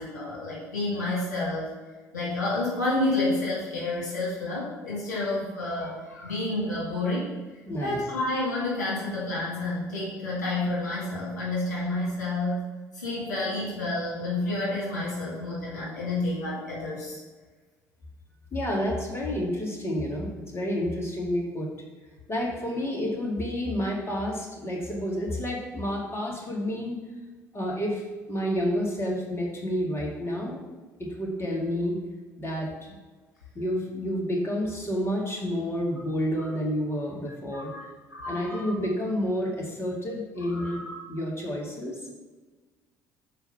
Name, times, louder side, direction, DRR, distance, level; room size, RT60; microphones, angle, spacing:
voice 1, 0.0-1.7 2.1-7.3 7.8-12.6 12.9-17.2 37.5-37.8 38.1-38.7 40.4-40.9, left 2 dB, 85° left, -6 dB, 2.2 m, -29 dB
voice 2, 7.7-8.0 18.5-21.7 22.3-27.0 27.5-30.6 31.0-32.0 32.4-32.9 33.5-37.7 38.3-40.8 41.1-42.1, equal, 30° left, -2 dB, 2.1 m, -29 dB
6.6 x 4.5 x 5.9 m, 1.3 s
figure-of-eight pair, 55°, 9 cm